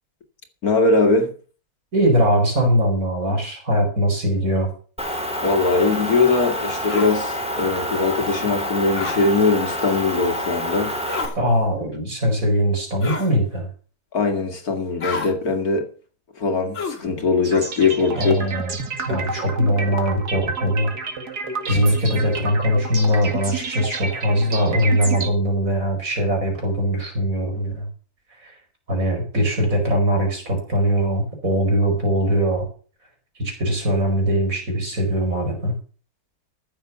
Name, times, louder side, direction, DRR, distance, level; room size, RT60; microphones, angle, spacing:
voice 1, 0.6-1.3 5.4-10.9 14.1-15.9 16.4-18.5, left 3 dB, 65° left, 2.7 m, -21 dB
voice 2, 1.9-4.7 11.4-13.7 18.2-18.8 19.1-20.9 21.7-27.9 28.4-28.5 28.9-32.7 33.4-35.7, equal, 55° right, 5.6 m, -21 dB
Motor vehicle (road) / Engine, 5.0-11.3, equal, 5° right, 2.4 m, -27 dB
sound 1, 6.9-7.2 8.9-9.2 11.0-11.4 13.0-13.3 15.0-15.3 16.7-17.1, left 4 dB, 50° left, 2.7 m, -29 dB
sound 2, 17.4-25.3, right 4 dB, 80° right, 2.7 m, -30 dB
14.5 x 7.4 x 7.0 m
omnidirectional pair, 1.7 m